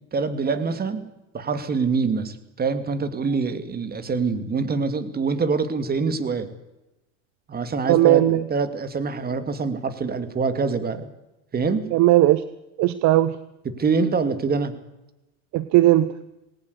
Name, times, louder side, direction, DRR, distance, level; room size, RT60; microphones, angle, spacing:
voice 1, 0.1-1.0 1.3-6.5 7.5-11.1 11.5-11.8 13.6-14.8, right 4 dB, 25° right, 11 dB, 2.6 m, -25 dB
voice 2, 7.9-8.4 11.9-12.4 12.8-13.3 15.5-16.1, right 15 dB, 50° right, 15 dB, 1.0 m, -17 dB
20.5 x 18.5 x 8.3 m, 0.96 s
supercardioid pair, 115°, 37 cm